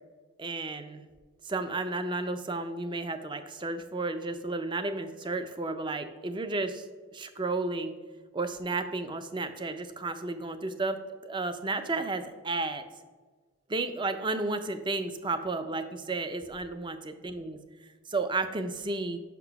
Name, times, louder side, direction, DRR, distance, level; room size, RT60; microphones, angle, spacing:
voice 1, 0.4-1.0 1.4-6.9 7.1-8.0 8.3-12.8 13.7-17.0 17.2-17.6 18.1-19.2, right 3 dB, 20° right, 10 dB, 0.4 m, -32 dB
5.9 x 5.5 x 5.7 m, 1.4 s
head